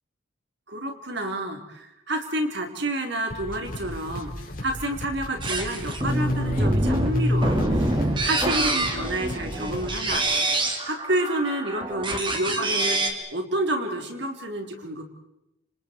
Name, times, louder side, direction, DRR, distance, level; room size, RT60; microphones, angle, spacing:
voice 1, 0.7-4.3 4.6-10.3 10.8-13.0 13.3-15.0, right 1 dB, 55° right, 4 dB, 4.1 m, -29 dB
sound 1, 3.3-10.1, left 1 dB, 45° left, 5.3 m, -37 dB
sound 2, 5.4-13.1, right 1 dB, 25° right, 3.0 m, -25 dB
29.5 x 27.5 x 4.7 m, 0.89 s
head